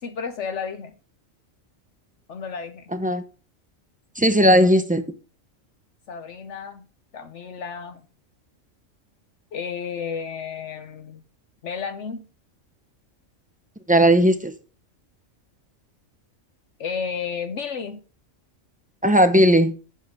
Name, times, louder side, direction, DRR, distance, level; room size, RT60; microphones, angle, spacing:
voice 1, 0.0-0.9 2.3-2.9 6.1-6.9 7.1-8.0 9.5-11.2 11.6-12.3 16.8-18.0, left 6 dB, 65° left, 1.0 m, -32 dB
voice 2, 4.2-5.0 13.9-14.5 19.0-19.7, equal, 10° right, 0.5 m, -16 dB
11.0 x 7.3 x 3.5 m
omnidirectional pair, 1.4 m